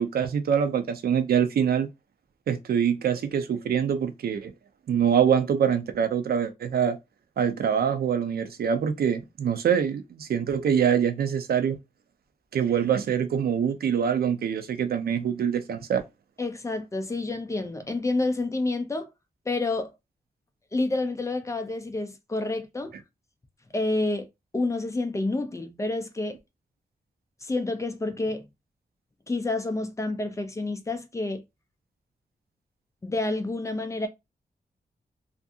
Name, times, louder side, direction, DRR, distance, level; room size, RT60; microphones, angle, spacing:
voice 1, 0.0-1.9 2.5-4.5 4.9-7.0 7.4-11.8 12.5-16.0, right 8 dB, 85° right, 0.4 m, -24 dB
voice 2, 16.4-19.1 19.5-19.9 20.7-22.9 23.7-24.3 24.5-26.4 27.4-28.5 29.3-31.4 33.0-34.1, left 2 dB, 20° left, 0.4 m, -29 dB
2.6 x 2.5 x 2.4 m
wide cardioid pair, 150°, 15 cm